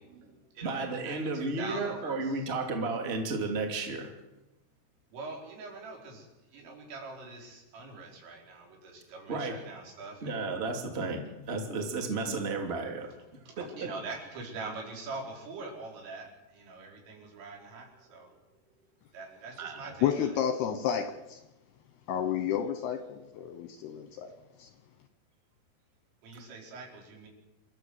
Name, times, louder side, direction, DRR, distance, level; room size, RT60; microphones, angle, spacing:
voice 1, 0.0-2.5 5.1-10.4 13.5-18.4 19.1-20.3 26.2-27.3, right 3 dB, 80° right, 7.0 m, -43 dB
voice 2, 0.6-4.1 9.3-9.6 10.2-13.4 13.8-13.9 19.6-19.9, right 3 dB, 20° right, 1.8 m, -33 dB
voice 3, 20.0-21.4 22.1-24.3 24.6-24.7, left 9 dB, 75° left, 2.5 m, -31 dB
27.5 x 13.0 x 8.0 m
omnidirectional pair, 5.7 m